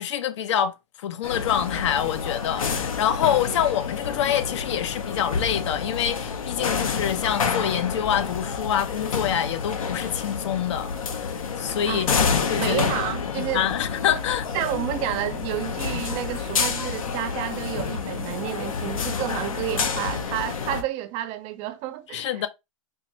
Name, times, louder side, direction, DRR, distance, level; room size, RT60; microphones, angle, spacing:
voice 1, 0.0-11.0 11.2-12.1 12.5-12.9 13.3-14.5 22.1-22.5, left 9 dB, 60° left, 0.7 m, -26 dB
sound 1, 1.2-20.8, left 6 dB, 80° left, 0.9 m, -28 dB
voice 2, 12.6-13.7 14.5-22.4, right 13 dB, 35° right, 0.4 m, -30 dB
4.5 x 2.5 x 3.0 m
hypercardioid pair, 125°, 17 cm